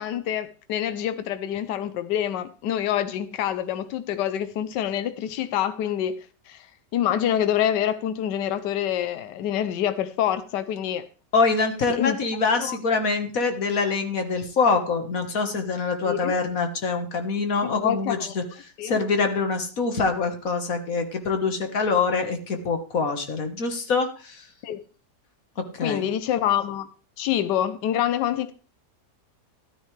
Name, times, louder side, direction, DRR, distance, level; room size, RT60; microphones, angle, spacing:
voice 1, 0.0-6.7 6.9-11.1 11.9-12.2 12.6-12.8 16.0-16.4 17.6-18.3 18.8-19.0 24.6-24.8 25.8-26.9 27.2-28.5, left 10 dB, 80° left, 1.4 m, -26 dB
voice 2, 11.3-18.4 18.8-24.4 25.6-26.1, left 4 dB, 55° left, 1.8 m, -25 dB
13.5 x 12.5 x 3.3 m
omnidirectional pair, 1.8 m